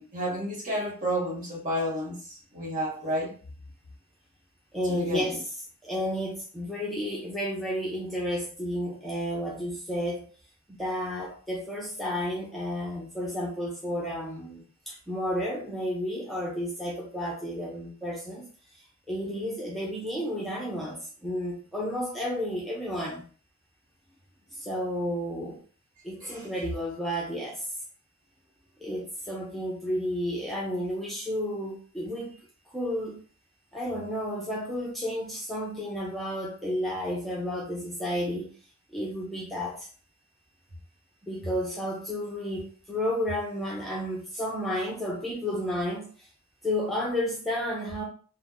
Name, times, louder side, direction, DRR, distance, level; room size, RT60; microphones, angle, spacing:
voice 1, 0.0-3.3 4.9-5.3 26.2-26.5, equal, 40° right, 1.1 m, -31 dB
voice 2, 4.7-5.4 5.8-10.3 10.7-18.5 19.1-23.2 24.5-25.6 26.0-27.7 28.8-32.4 32.7-33.2 33.7-38.5 38.9-39.9 41.2-46.3 46.6-48.0, equal, ahead, 0.6 m, -32 dB
2.9 x 2.1 x 3.7 m
head